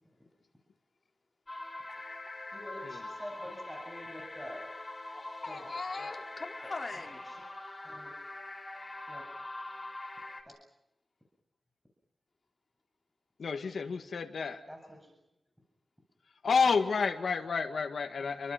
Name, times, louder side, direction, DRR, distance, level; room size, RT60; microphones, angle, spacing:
sound 1, 1.5-10.4, left 2 dB, 25° left, 4.1 m, -43 dB
voice 1, 2.5-4.7 5.5-5.6 6.0-6.1 7.8-8.2 9.1-9.2 10.4-10.5 14.7-15.1, equal, ahead, 2 dB, 8.0 m, -46 dB
voice 2, 5.1-7.2, left 3 dB, 45° left, 2 dB, 4.3 m, -40 dB
voice 3, 13.4-14.6 16.4-18.5, left 5 dB, 80° left, 4 dB, 1.9 m, -30 dB
29.5 x 24.5 x 6.0 m, 0.83 s
wide cardioid pair, 75°, 0 cm